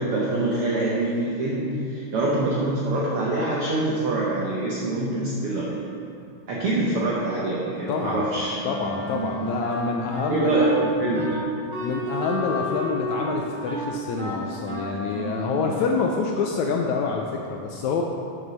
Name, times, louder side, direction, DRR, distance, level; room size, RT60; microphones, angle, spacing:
voice 1, 0.0-5.8 6.5-8.6 10.3-11.4, right 2 dB, 75° right, -5 dB, 1.3 m, -25 dB
voice 2, 7.9-8.2 8.6-10.7 11.8-18.0, left 5 dB, 80° left, 1 dB, 1.7 m, -27 dB
Wind instrument woodwind instrument, 8.6-16.1, equal, 30° right, 1.7 m, -31 dB
7.2 x 6.5 x 6.1 m, 2.6 s
omnidirectional pair, 3.8 m